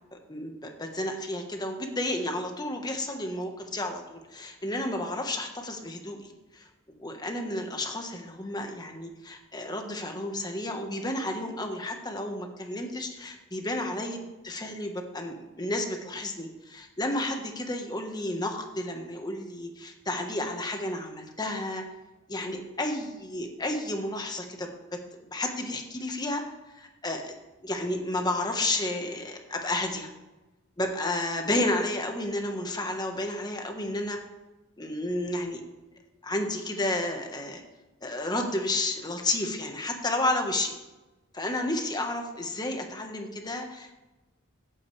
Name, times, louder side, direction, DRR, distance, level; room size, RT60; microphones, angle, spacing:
voice 1, 0.1-6.7 7.0-14.2 14.4-21.8 22.3-25.0 25.3-26.4 26.7-27.3 27.6-30.1 30.8-34.2 34.8-35.6 36.2-37.6 38.0-40.7 41.3-44.0, left 1 dB, 20° left, 3 dB, 1.4 m, -31 dB
15.5 x 8.8 x 3.4 m, 1.1 s
head